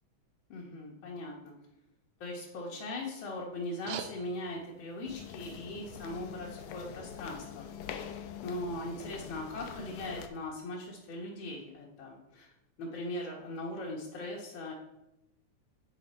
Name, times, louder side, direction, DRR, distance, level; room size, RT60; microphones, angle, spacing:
voice 1, 0.5-1.5 2.2-7.7 8.4-12.5 12.8-14.7, left 1 dB, 60° left, -4 dB, 1.4 m, -39 dB
sound 1, 3.6-8.6, right 8 dB, 80° right, 2.0 m, -49 dB
sound 2, 5.0-10.3, left 8 dB, 80° left, 1.9 m, -44 dB
9.5 x 4.2 x 4.2 m, 0.91 s
omnidirectional pair, 3.5 m